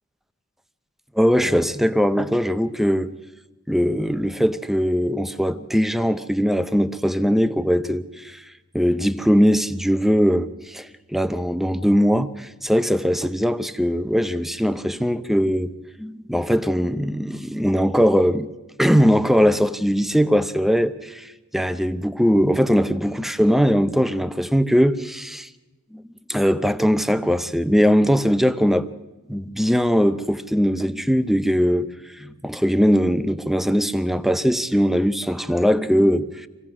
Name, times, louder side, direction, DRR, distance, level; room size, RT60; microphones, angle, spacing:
voice 1, 1.1-3.1 3.7-8.4 8.7-15.7 16.0-18.5 18.8-25.5 25.9-26.0 26.3-28.9 29.3-31.9 32.2-36.5, equal, ahead, 0.7 m, -20 dB
26.0 x 16.5 x 6.1 m
head